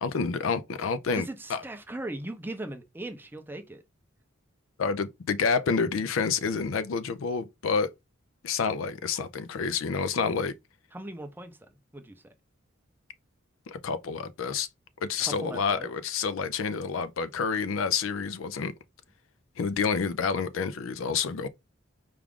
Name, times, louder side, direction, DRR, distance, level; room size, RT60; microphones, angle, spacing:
voice 1, 0.0-1.6 4.8-7.9 8.4-10.5 13.7-14.7 15.0-18.7 19.6-21.5, left 5 dB, 80° left, 0.4 m, -28 dB
voice 2, 1.1-3.8 10.9-11.6 11.9-12.3 15.2-15.9, right 1 dB, 10° right, 0.5 m, -38 dB
4.8 x 2.4 x 3.5 m
head